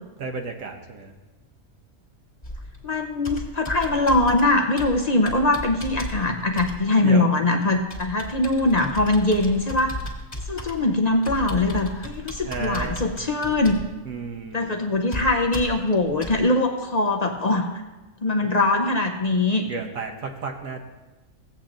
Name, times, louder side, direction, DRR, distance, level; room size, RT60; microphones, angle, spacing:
voice 1, 0.2-1.1 7.0-7.4 12.4-13.1 14.0-14.7 19.7-20.8, right 4 dB, 75° right, 2 dB, 1.3 m, -33 dB
Computer keyboard, 2.4-16.4, left 1 dB, 30° left, 1.8 m, -36 dB
voice 2, 2.8-9.9 10.5-13.8 14.5-17.7 18.2-19.7, left 2 dB, 45° left, 3 dB, 0.5 m, -22 dB
16.0 x 8.5 x 2.5 m, 1.1 s
omnidirectional pair, 1.5 m